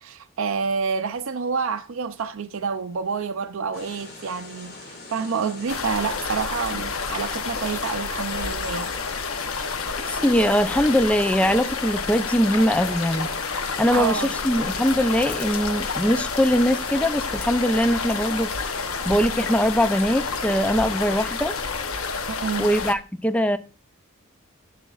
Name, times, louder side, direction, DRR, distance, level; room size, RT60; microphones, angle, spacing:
voice 1, 0.0-8.9 13.9-14.3 22.3-22.7, right 5 dB, 70° right, 0.5 m, -28 dB
sound 1, 3.7-21.3, left 2 dB, 50° left, 2.2 m, -42 dB
sound 2, 5.7-22.9, left 5 dB, 85° left, 0.9 m, -29 dB
voice 2, 10.2-13.3 13.8-21.5 22.6-23.6, equal, 5° left, 0.4 m, -22 dB
11.0 x 7.1 x 2.4 m
head